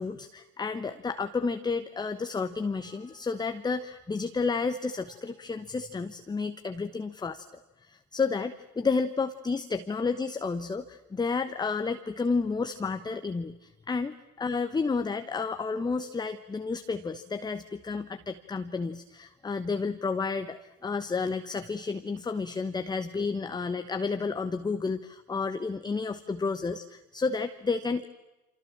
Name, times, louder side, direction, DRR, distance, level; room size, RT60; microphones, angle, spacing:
voice 1, 0.0-28.1, left 4 dB, 10° left, 9 dB, 1.0 m, -31 dB
28.5 x 27.0 x 7.4 m, 1.1 s
figure-of-eight pair, 80°, 45 cm